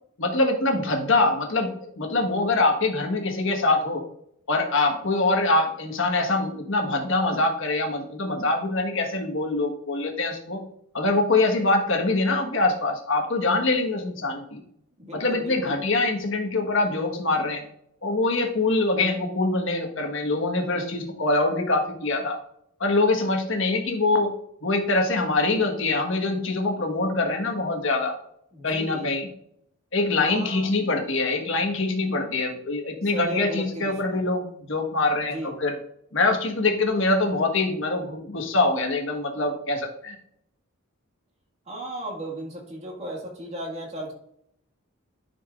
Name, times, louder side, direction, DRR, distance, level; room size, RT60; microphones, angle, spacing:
voice 1, 0.2-4.0 4.5-10.6 10.9-14.6 15.1-17.6 18.0-22.4 22.8-24.3 24.6-28.1 28.6-29.3 29.9-35.7 36.1-40.1, left 2 dB, 55° left, 3 dB, 1.4 m, -24 dB
voice 2, 15.0-15.8 28.5-29.1 30.2-30.7 33.0-34.2 35.2-35.5 41.7-44.1, right 1 dB, 30° right, 0 dB, 1.8 m, -35 dB
10.5 x 5.8 x 2.5 m, 0.71 s
head